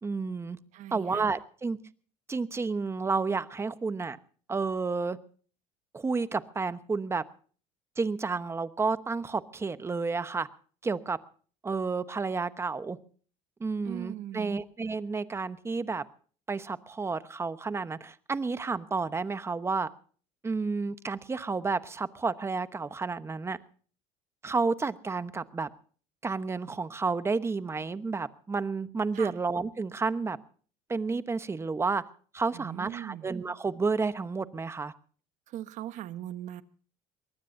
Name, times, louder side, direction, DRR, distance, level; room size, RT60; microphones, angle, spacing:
voice 1, 0.0-0.6 0.9-1.8 2.3-4.2 4.5-5.2 5.9-7.2 8.0-10.5 10.8-11.2 11.6-13.0 13.6-16.0 16.5-19.9 20.4-23.6 24.4-25.7 26.2-30.4 30.9-32.0 32.3-34.9, right 4 dB, 20° right, 13 dB, 1.1 m, -31 dB
voice 2, 0.7-1.2 13.8-14.6 29.1-29.3 32.5-33.3 35.5-36.6, right 12 dB, 55° right, 12 dB, 1.3 m, -40 dB
23.5 x 19.5 x 2.7 m, 0.43 s
cardioid pair, 120°, 15 cm